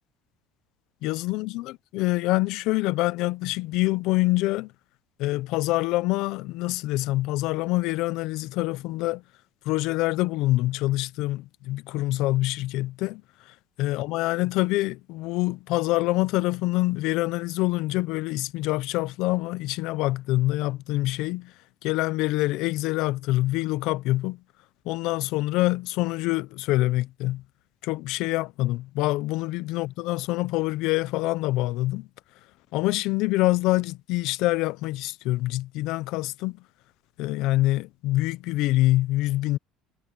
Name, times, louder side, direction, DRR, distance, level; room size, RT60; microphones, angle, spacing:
voice 1, 1.0-4.7 5.2-9.2 9.6-13.2 13.8-21.5 21.8-24.4 24.8-27.4 27.8-32.1 32.7-36.6 37.2-39.6, left 18 dB, 70° left, 0.7 m, -25 dB
cardioid pair, 120°, 0 cm